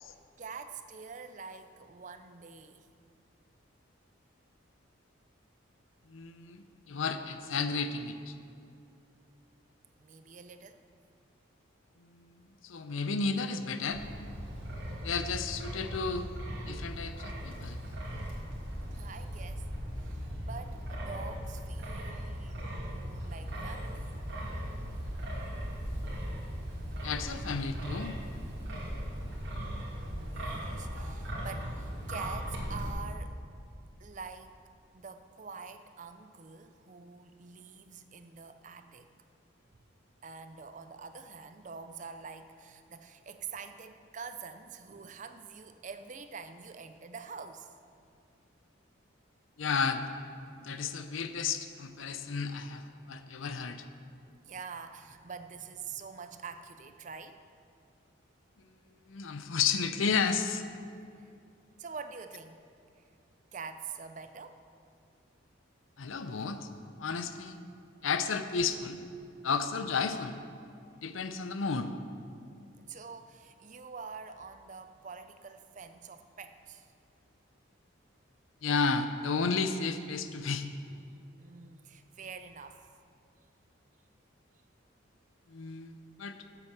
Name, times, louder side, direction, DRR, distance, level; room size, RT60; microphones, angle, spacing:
voice 1, 0.4-2.9 10.0-10.8 19.0-19.6 20.0-24.1 30.3-33.4 34.0-34.6 34.9-39.1 40.2-47.7 54.4-57.4 61.8-62.6 63.0-63.1 63.5-64.6 69.3-69.5 72.8-76.9 81.4-82.8, right 5 dB, 40° right, 9 dB, 0.5 m, -46 dB
voice 2, 6.1-8.3 12.0-14.0 15.0-16.3 16.7-17.8 27.0-28.2 49.6-50.0 50.6-53.8 59.1-60.6 66.0-66.7 67.0-67.6 68.0-69.0 69.4-70.4 71.0-71.9 78.6-80.7 85.5-86.4, left 5 dB, 75° left, 9 dB, 0.6 m, -32 dB
Wind, 13.9-32.9, equal, 60° right, 2.5 m, -38 dB
8.1 x 7.0 x 7.3 m, 2.4 s
head